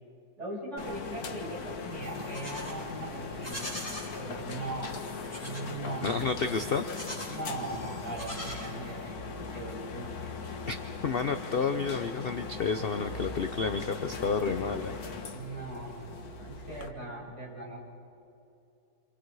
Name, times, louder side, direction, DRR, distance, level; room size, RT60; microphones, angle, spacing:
voice 1, 0.4-3.9 4.2-5.0 5.4-6.3 7.3-9.3 9.5-10.4 15.3-17.8, right 1 dB, 40° right, -4 dB, 6.7 m, -39 dB
sound 1, 0.8-16.9, left 4 dB, 65° left, 1.9 m, -40 dB
Livestock farm animals working animals, 2.0-2.8 3.3-4.1 5.2-5.7 6.8-7.4 8.0-9.1, left 1 dB, 10° left, 5.1 m, -41 dB
voice 2, 6.0-7.0 10.7-10.8 11.0-15.0, left 5 dB, 50° left, 8 dB, 0.8 m, -30 dB
28.0 x 27.0 x 4.8 m, 2.7 s
omnidirectional pair, 1.8 m